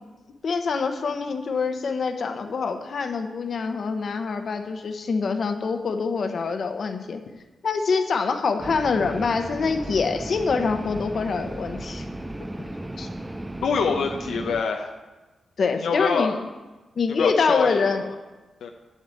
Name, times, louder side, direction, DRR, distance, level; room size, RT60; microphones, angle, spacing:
voice 1, 0.4-7.2 7.6-12.1 15.6-16.3 17.0-18.0, left 5 dB, 60° left, 6 dB, 1.0 m, -25 dB
sound 1, 8.6-14.6, right 1 dB, 15° right, 0.5 m, -35 dB
voice 2, 13.6-14.9 15.8-16.4 17.2-18.1 18.6-18.7, left 5 dB, 90° left, 2 dB, 0.7 m, -25 dB
7.4 x 7.4 x 8.4 m, 1.2 s
cardioid pair, 85°, 0 cm